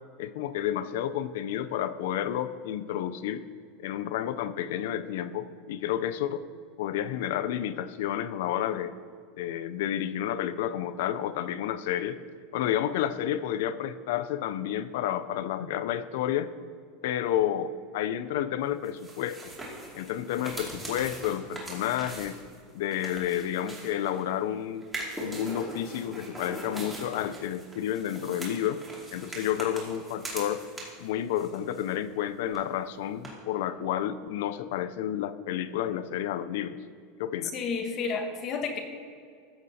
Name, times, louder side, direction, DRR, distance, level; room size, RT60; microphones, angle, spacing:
voice 1, 0.2-3.4 3.8-6.5 6.8-9.0 9.4-12.2 12.5-16.5 17.0-19.4 19.9-22.4 22.7-24.9 25.2-28.8 29.1-30.7 31.0-36.8 37.2-37.5, left 11 dB, 75° left, 14 dB, 0.4 m, -30 dB
sound 1, 18.8-24.3 24.8-31.1 31.4-32.2 32.5-32.6 33.2-33.3, right 1 dB, 10° right, 2.2 m, -41 dB
voice 2, 37.4-38.8, left 5 dB, 45° left, 6 dB, 1.1 m, -31 dB
14.0 x 6.2 x 2.7 m, 2.2 s
supercardioid pair, 120°, 0 cm